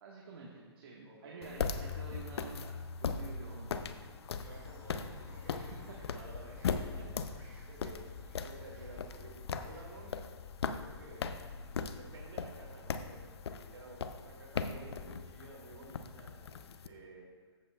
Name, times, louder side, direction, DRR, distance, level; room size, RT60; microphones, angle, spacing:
voice 1, 0.0-3.9 5.5-6.2, right 4 dB, 60° right, -2 dB, 1.4 m, -50 dB
voice 2, 1.0-1.5 4.4-5.6 6.0-8.0 8.3-10.1 10.6-11.4 11.9-17.3, right 2 dB, 80° right, -2 dB, 2.5 m, -53 dB
sound 1, 1.4-16.9, left 6 dB, 70° left, 0.6 m, -40 dB
sound 2, 4.4-10.2, right 3 dB, 15° right, 1.7 m, -56 dB
13.5 x 8.0 x 2.3 m, 1.5 s
hypercardioid pair, 135°, 14 cm